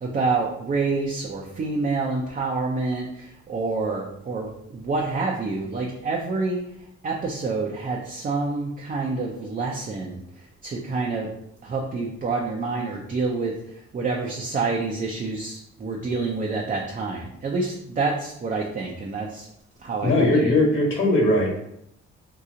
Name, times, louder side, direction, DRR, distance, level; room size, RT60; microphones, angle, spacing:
voice 1, 0.0-6.6 7.0-11.3 11.6-19.5 19.8-20.5, right 3 dB, 25° right, -1 dB, 0.5 m, -27 dB
voice 2, 20.0-21.5, left 1 dB, 40° left, -2 dB, 1.3 m, -19 dB
2.8 x 2.3 x 3.7 m, 0.77 s
cardioid pair, 90°, 30 cm